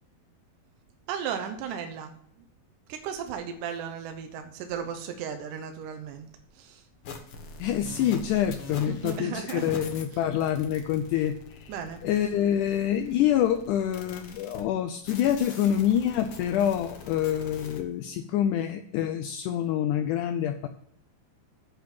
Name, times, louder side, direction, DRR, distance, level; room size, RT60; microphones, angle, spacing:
voice 1, 1.1-2.1 2.9-6.3 6.6-6.8 8.9-9.7 11.7-12.0, right 7 dB, 75° right, 6 dB, 2.1 m, -35 dB
sound 1, 7.0-9.2 9.5-14.6 15.0-17.8, left 4 dB, 60° left, 1.3 m, -44 dB
voice 2, 7.6-11.8 12.0-20.7, left 10 dB, 90° left, 9 dB, 1.7 m, -26 dB
9.0 x 5.2 x 7.5 m, 0.70 s
omnidirectional pair, 4.1 m